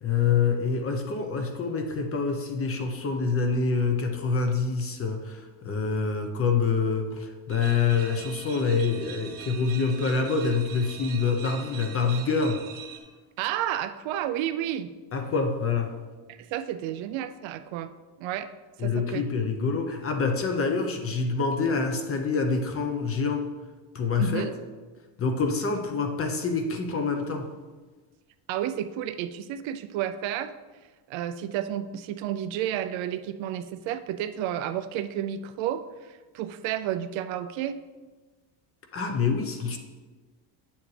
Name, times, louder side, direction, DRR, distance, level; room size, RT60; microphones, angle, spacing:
voice 1, 0.0-12.6 15.1-15.9 18.8-23.5 23.9-24.5 25.2-27.5 38.9-39.8, left 5 dB, 30° left, 5 dB, 0.7 m, -26 dB
sound 1, 7.5-13.0, right 8 dB, 45° right, 1.1 m, -43 dB
voice 2, 13.4-14.9 16.3-17.9 18.2-18.5 18.8-19.2 24.2-24.5 28.5-30.5 31.1-37.8, right 11 dB, 65° right, 10 dB, 0.6 m, -31 dB
8.6 x 7.2 x 3.2 m, 1.3 s
cardioid pair, 150°, 49 cm